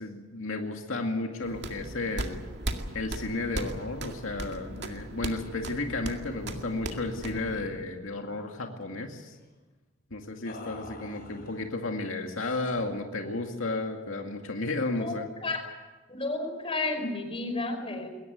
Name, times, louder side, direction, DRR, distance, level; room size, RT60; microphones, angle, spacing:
voice 1, 0.0-2.4 2.9-9.4 10.1-15.3, left 2 dB, 90° left, 3 dB, 2.2 m, -33 dB
sound 1, 1.4-7.7, right 1 dB, 60° right, 2.1 m, -37 dB
sound 2, 7.7-7.8 8.1-8.9 10.4-11.7 12.3-12.9, left 1 dB, 50° left, 5.2 m, -48 dB
voice 2, 16.1-18.1, left 2 dB, 30° left, 5 dB, 5.0 m, -32 dB
21.5 x 18.0 x 9.4 m, 1.3 s
head